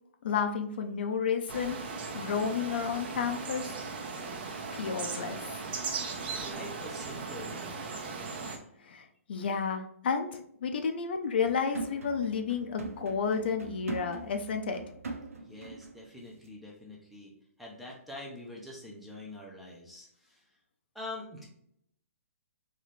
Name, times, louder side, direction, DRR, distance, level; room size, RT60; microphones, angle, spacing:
voice 1, 0.2-1.8 2.1-3.7 4.7-5.6 8.8-14.8, left 6 dB, 45° left, 5 dB, 0.6 m, -31 dB
sound 1, 1.5-8.6, right 4 dB, 40° right, 0.9 m, -38 dB
voice 2, 6.4-7.8 15.4-17.3 17.6-20.4 20.9-21.5, left 1 dB, ahead, -3 dB, 0.6 m, -45 dB
sound 2, 11.4-16.0 16.3-16.5, right 3 dB, 80° right, 1.1 m, -42 dB
4.1 x 3.1 x 3.1 m, 0.70 s
hypercardioid pair, 170°, 8 cm